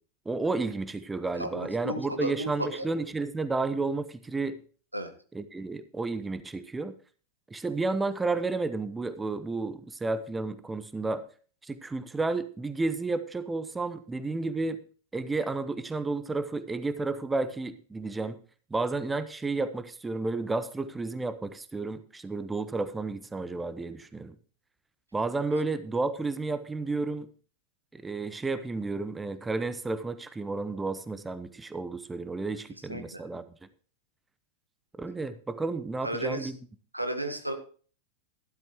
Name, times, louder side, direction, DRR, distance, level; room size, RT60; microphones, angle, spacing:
voice 1, 0.3-4.6 5.3-7.0 7.5-11.3 11.6-14.8 15.1-18.4 18.7-24.3 25.1-27.3 27.9-33.4 35.0-36.6, right 3 dB, 10° right, 13 dB, 0.8 m, -32 dB
voice 2, 1.3-2.9 4.9-5.1 25.5-25.6 32.9-33.2 36.0-36.5 36.9-37.5, right 1 dB, 85° right, 6 dB, 1.6 m, -33 dB
13.0 x 12.0 x 3.1 m, 0.41 s
figure-of-eight pair, 90°, 0 cm